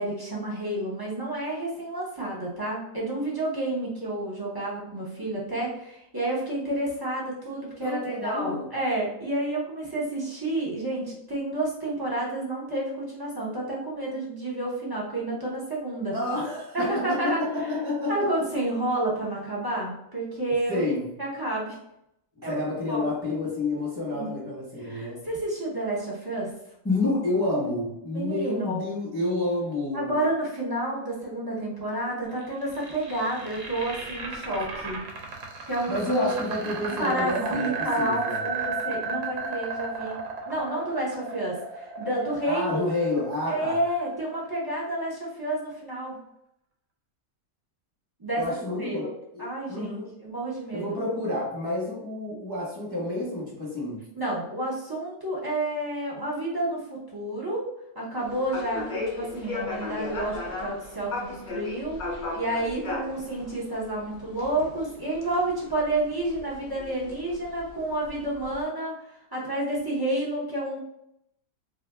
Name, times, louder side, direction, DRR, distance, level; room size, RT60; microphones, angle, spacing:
voice 1, 0.0-16.2 16.7-17.8 18.1-20.8 21.2-21.8 22.4-22.6 22.9-23.1 24.1-24.3 24.8-26.5 28.1-28.8 29.9-35.0 35.7-36.3 37.0-40.2 40.5-42.8 43.5-46.2 48.2-49.1 49.4-49.9 50.2-51.0 54.2-57.7 57.9-70.8, right 1 dB, 35° right, -6 dB, 0.3 m, -30 dB
voice 2, 7.8-8.7 16.1-18.3 20.7-21.1 22.4-25.2 26.8-30.2 35.9-38.5 42.4-43.8 48.3-50.1 50.7-54.1, left 2 dB, 5° right, -6 dB, 1.1 m, -29 dB
sound 1, 32.4-44.5, right 4 dB, 60° right, 0.9 m, -34 dB
sound 2, 58.2-68.6, left 3 dB, 55° left, 0.5 m, -37 dB
2.7 x 2.5 x 3.5 m, 0.78 s
omnidirectional pair, 1.7 m